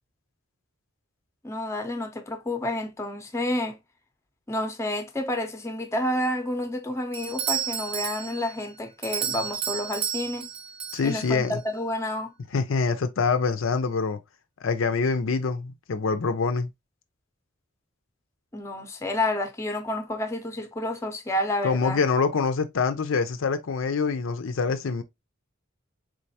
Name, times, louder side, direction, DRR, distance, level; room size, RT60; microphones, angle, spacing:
voice 1, 1.4-3.8 4.5-10.5 11.0-12.3 18.5-22.0, left 1 dB, 15° left, 0.6 m, -29 dB
Doorbell, 7.1-11.6, right 9 dB, 30° right, 0.3 m, -32 dB
voice 2, 10.9-11.6 12.5-14.2 14.6-16.7 21.6-25.0, left 4 dB, 75° left, 0.5 m, -25 dB
3.9 x 3.2 x 2.7 m
head